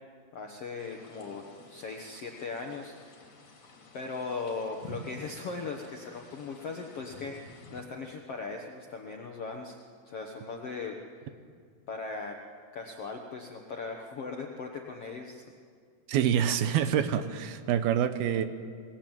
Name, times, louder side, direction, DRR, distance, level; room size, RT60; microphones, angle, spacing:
voice 1, 0.3-3.2 3.9-9.8 10.0-11.0 11.9-12.4 12.7-15.4, left 4 dB, 65° left, 2 dB, 1.5 m, -38 dB
sound 1, 0.8-7.8, left 2 dB, 45° left, 3.7 m, -50 dB
voice 2, 16.1-18.5, right 9 dB, 75° right, 10 dB, 2.7 m, -26 dB
22.5 x 20.0 x 9.1 m, 2.1 s
omnidirectional pair, 4.6 m